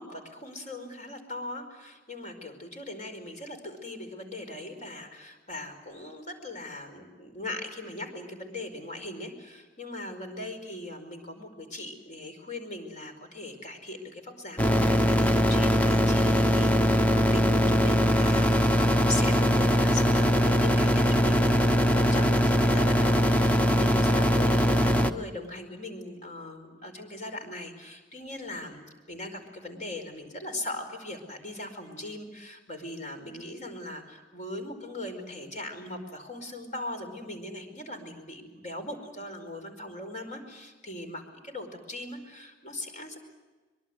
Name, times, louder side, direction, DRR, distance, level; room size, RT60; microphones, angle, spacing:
voice 1, 0.0-43.2, left 1 dB, 40° left, 6 dB, 5.0 m, -39 dB
sound 1, 14.6-25.1, equal, 10° left, 1.0 m, -22 dB
24.5 x 23.0 x 8.0 m, 1.3 s
head